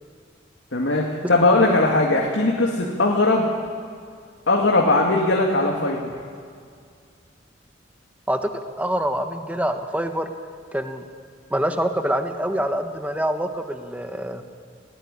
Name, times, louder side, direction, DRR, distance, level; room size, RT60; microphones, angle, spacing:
voice 1, 0.7-3.5 4.5-6.1, left 2 dB, 85° left, -1 dB, 2.3 m, -19 dB
voice 2, 8.8-10.3 10.7-11.0 11.5-14.4, right 1 dB, 10° right, 6 dB, 1.4 m, -25 dB
19.0 x 18.5 x 9.9 m, 2.1 s
head